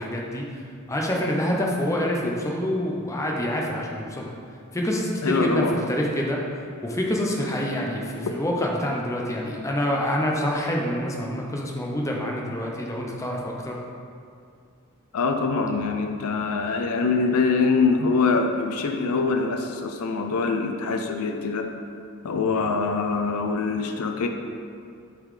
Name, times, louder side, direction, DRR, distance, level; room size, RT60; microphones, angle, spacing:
voice 1, 0.0-4.3 4.7-13.8, left 1 dB, 15° left, -1 dB, 0.6 m, -27 dB
voice 2, 5.2-5.8 15.1-21.7 22.2-24.3, left 4 dB, 80° left, 5 dB, 0.5 m, -24 dB
8.0 x 3.9 x 3.2 m, 2.4 s
head